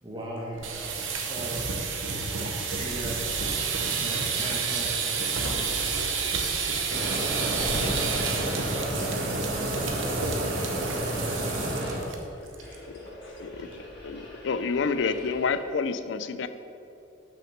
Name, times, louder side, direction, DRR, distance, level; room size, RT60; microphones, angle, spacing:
voice 1, 0.0-1.6 2.1-3.5 3.8-5.0, right 1 dB, 25° right, -3 dB, 1.1 m, -38 dB
sound 1, 0.5-12.2 12.5-12.8 13.1-13.2 13.5-13.9, right 5 dB, 90° right, 0.9 m, -30 dB
sound 2, 4.4-15.6, left 1 dB, 55° left, 1.7 m, -47 dB
voice 2, 5.4-6.1 6.6-6.7 12.4-12.5 12.9-13.5, left 1 dB, 90° left, -2 dB, 1.6 m, -47 dB
Mechanisms, 6.9-12.0, equal, 55° right, 1.9 m, -30 dB
voice 3, 13.4-16.5, left 5 dB, 75° left, 12 dB, 0.4 m, -29 dB
6.1 x 5.9 x 6.5 m, 2.7 s
head